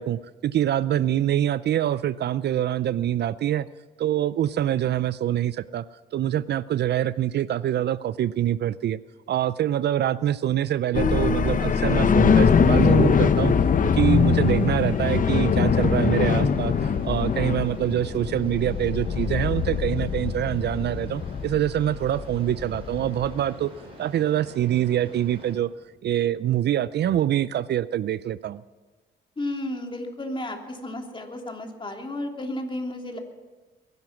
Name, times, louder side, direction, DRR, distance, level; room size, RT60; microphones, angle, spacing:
voice 1, 0.0-3.7 4.0-5.8 6.1-9.0 9.3-13.5 13.9-16.7 17.0-23.7 24.0-25.7 26.0-28.6, right 11 dB, 60° right, 17 dB, 0.5 m, -25 dB
sound 1, 10.9-23.4, left 6 dB, 40° left, 0.9 m, -22 dB
sound 2, 11.4-25.5, equal, 30° right, 7.5 m, -47 dB
voice 2, 29.4-33.2, left 1 dB, 25° left, 2 dB, 3.0 m, -33 dB
22.5 x 11.0 x 5.9 m, 1.3 s
cardioid pair, 90°, 20 cm